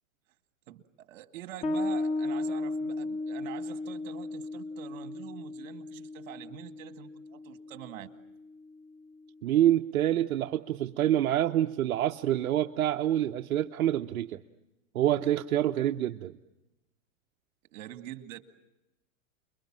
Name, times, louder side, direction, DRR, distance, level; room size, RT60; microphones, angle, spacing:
voice 1, 0.7-8.1 17.7-18.4, right 12 dB, 65° right, 8 dB, 2.2 m, -45 dB
Bass guitar, 1.6-8.8, left 2 dB, 15° left, 1.0 m, -35 dB
voice 2, 9.4-14.4 14.9-16.3, right 12 dB, 85° right, 6 dB, 0.9 m, -27 dB
29.5 x 22.5 x 7.6 m, 0.94 s
hypercardioid pair, 140°, 42 cm